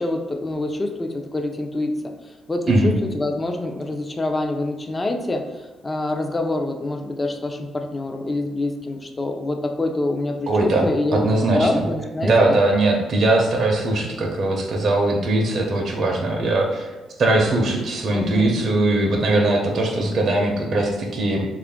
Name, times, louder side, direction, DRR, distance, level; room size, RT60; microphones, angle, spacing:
voice 1, 0.0-2.0 2.5-5.5 5.8-12.7 18.1-18.6, left 2 dB, 25° left, 4 dB, 0.4 m, -26 dB
voice 2, 10.5-11.8 12.2-16.9 17.2-21.4, right 2 dB, 55° right, -1 dB, 0.6 m, -20 dB
3.6 x 2.4 x 3.5 m, 1.2 s
cardioid pair, 90°, 0 cm